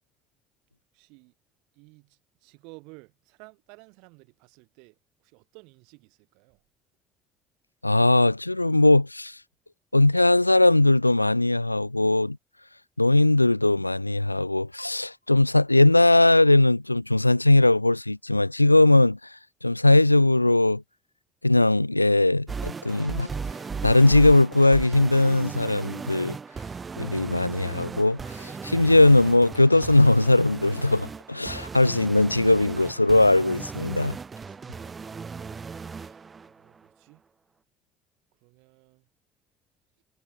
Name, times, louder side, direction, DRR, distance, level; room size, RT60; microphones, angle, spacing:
voice 1, 0.9-1.3 1.7-6.6 34.7-35.6 35.9-37.2 38.4-39.1, right 30 dB, 65° right, 5.0 m, -53 dB
voice 2, 7.8-9.3 9.9-12.4 13.0-19.2 19.6-20.8 21.4-23.3 23.8-26.4 27.0-34.2, left 2 dB, 90° left, 0.5 m, -19 dB
sound 1, 22.5-36.5, right 5 dB, 35° right, 6.2 m, -37 dB
figure-of-eight pair, 50°, 0 cm